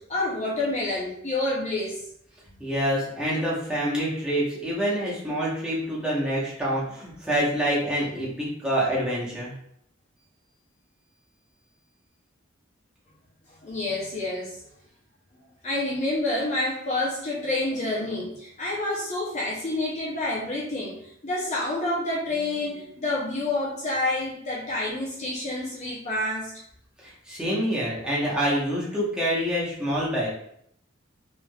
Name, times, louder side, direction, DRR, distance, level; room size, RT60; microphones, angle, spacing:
voice 1, 0.0-2.0 13.6-14.6 15.6-26.5, left 2 dB, 35° left, -5 dB, 0.6 m, -28 dB
voice 2, 2.6-9.5 27.0-30.3, equal, 5° right, -8 dB, 1.0 m, -26 dB
3.3 x 3.2 x 2.3 m, 0.69 s
head